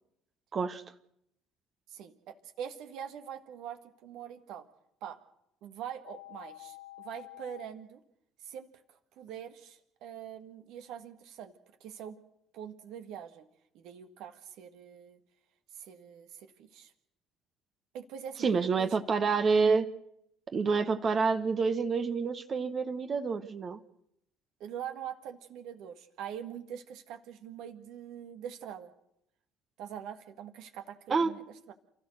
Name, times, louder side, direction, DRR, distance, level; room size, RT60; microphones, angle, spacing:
voice 1, 0.5-0.8 18.4-19.9 20.5-23.8 31.1-31.3, right 5 dB, 45° right, 9 dB, 1.3 m, -28 dB
voice 2, 1.9-4.7 5.0-5.2 5.6-8.0 8.4-11.5 11.8-12.2 12.5-13.5 13.7-15.2 15.7-16.9 17.9-18.5 18.8-19.0 24.6-28.9 29.8-31.7, right 9 dB, 65° right, 8 dB, 1.7 m, -44 dB
sound 1, 6.0-7.7, left 17 dB, 85° left, 0.9 m, -48 dB
29.0 x 14.0 x 6.5 m, 0.77 s
hypercardioid pair, 55°, 0 cm